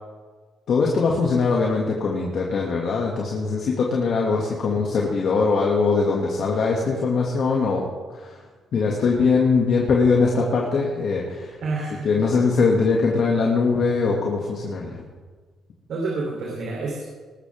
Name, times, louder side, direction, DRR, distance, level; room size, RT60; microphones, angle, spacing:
voice 1, 0.7-7.9 8.1-8.4 8.7-11.6 12.0-15.0, left 4 dB, 60° left, -2 dB, 2.3 m, -21 dB
voice 2, 11.6-12.1 15.9-17.0, right 3 dB, 70° right, -3 dB, 3.6 m, -28 dB
19.5 x 13.0 x 3.7 m, 1.4 s
cardioid pair, 90°, 0 cm